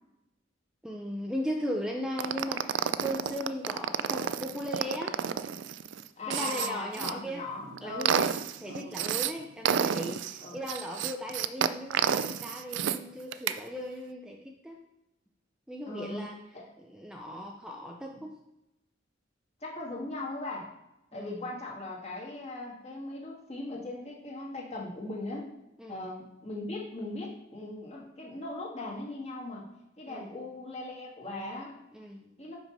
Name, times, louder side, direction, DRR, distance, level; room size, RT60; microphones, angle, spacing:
voice 1, 0.8-5.2 6.3-7.5 7.8-8.3 8.6-14.8 15.7-16.4 16.8-18.4 21.1-21.4 25.8-26.1 30.1-30.4 31.9-32.3, equal, 5° right, 1 dB, 0.5 m, -37 dB
sound 1, 2.2-7.1 7.6-9.3 9.6-13.0 13.3-13.6, right 8 dB, 70° right, 0.4 m, -30 dB
voice 2, 6.2-8.3 8.7-9.0 10.4-10.6 15.8-16.3 16.5-16.7 19.6-20.7 21.1-25.5 25.9-29.7 30.0-31.8 32.4-32.6, left 2 dB, 35° left, -3 dB, 1.8 m, -39 dB
5.9 x 5.5 x 5.4 m, 0.91 s
head